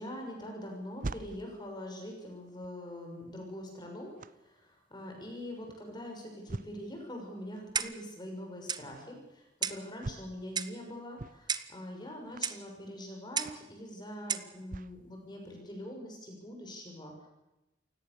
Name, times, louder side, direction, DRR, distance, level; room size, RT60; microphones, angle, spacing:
voice 1, 0.0-4.1 4.4-17.3, left 1 dB, 25° left, 2 dB, 6.4 m, -43 dB
sound 1, 0.6-15.0 15.5-15.6, right 2 dB, 50° right, 0.8 m, -47 dB
Clock, 7.8-8.1 8.7-8.9 9.6-9.9 10.6-10.8 11.5-11.8 12.4-12.6 13.4-13.6 14.3-14.5, right 6 dB, 25° right, 1.0 m, -34 dB
29.0 x 17.0 x 7.0 m, 0.96 s
head